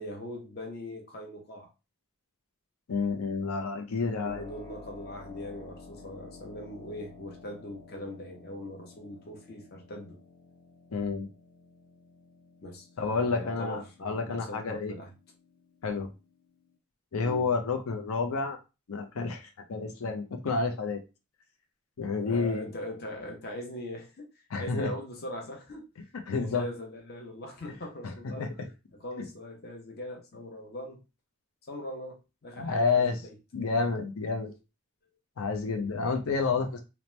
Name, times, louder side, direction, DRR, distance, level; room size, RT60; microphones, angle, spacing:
voice 1, 0.0-1.7 4.2-10.2 12.6-15.1 17.2-17.4 22.1-24.3 24.6-25.8 26.3-28.5 29.0-31.0 31.7-33.3, left 1 dB, 50° left, 0.7 m, -41 dB
voice 2, 2.9-4.4 10.9-11.3 13.0-14.9 15.8-16.1 17.1-18.6 18.9-21.0 22.0-22.7 24.5-24.9 26.3-26.6 28.0-28.5 32.6-33.1 33.5-34.5 35.4-36.8, left 4 dB, 80° left, 0.5 m, -29 dB
Keyboard (musical), 4.3-16.8, left 3 dB, 20° left, 0.4 m, -52 dB
2.8 x 2.1 x 3.1 m
head